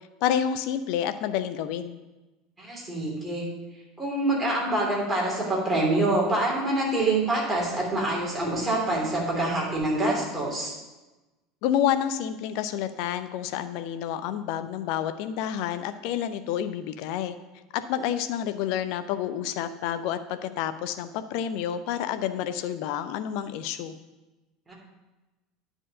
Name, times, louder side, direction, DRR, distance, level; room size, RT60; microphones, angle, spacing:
voice 1, 0.2-2.0 11.6-17.4 17.7-23.9, left 10 dB, 55° left, 11 dB, 0.5 m, -29 dB
voice 2, 2.6-3.4 4.0-10.7 24.7-24.8, right 2 dB, 15° right, -4 dB, 3.2 m, -26 dB
9.9 x 4.5 x 6.6 m, 1.1 s
figure-of-eight pair, 70°, 0 cm